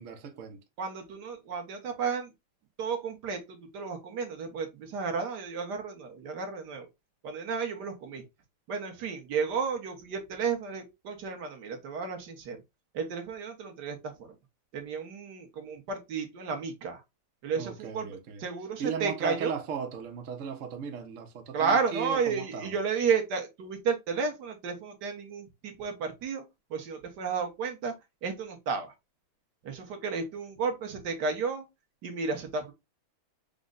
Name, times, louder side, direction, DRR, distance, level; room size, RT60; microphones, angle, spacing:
voice 1, 0.0-0.6 17.5-18.4 18.8-22.8, right 6 dB, 80° right, 0.7 m, -37 dB
voice 2, 0.8-2.3 2.8-6.9 7.2-8.2 8.7-12.6 12.9-14.3 14.7-17.0 17.4-19.5 21.5-26.4 26.7-27.9 28.2-28.9 29.6-31.6 32.0-32.7, right 5 dB, 60° right, 1.4 m, -32 dB
5.2 x 2.2 x 3.6 m
omnidirectional pair, 2.4 m